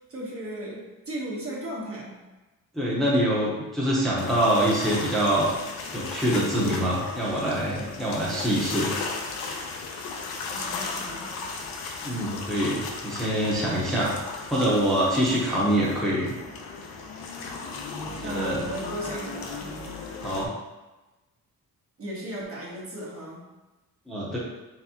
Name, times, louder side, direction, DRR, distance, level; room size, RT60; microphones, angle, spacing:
voice 1, 0.1-2.2 10.5-11.3 18.2-19.7 22.0-23.4, right 1 dB, 40° right, -4 dB, 1.1 m, -36 dB
voice 2, 2.7-5.5 5.9-8.9 12.0-14.1 14.5-16.3 18.0-18.6 20.2-20.5 24.1-24.4, right 1 dB, ahead, -6 dB, 0.9 m, -25 dB
sound 1, 4.2-20.5, left 4 dB, 85° left, 0.7 m, -36 dB
4.0 x 3.3 x 2.9 m, 1.1 s
cardioid pair, 120°, 36 cm